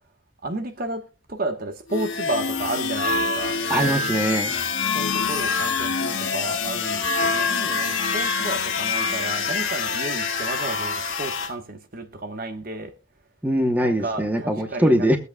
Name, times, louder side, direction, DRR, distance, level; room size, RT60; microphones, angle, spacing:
voice 1, 0.4-3.6 4.9-12.9 13.8-15.1, right 2 dB, 45° right, 1.2 m, -32 dB
sound 1, 1.9-11.5, left 4 dB, 75° left, 1.7 m, -25 dB
voice 2, 3.7-4.5 13.4-15.2, equal, 10° right, 0.8 m, -21 dB
22.0 x 8.1 x 2.2 m
head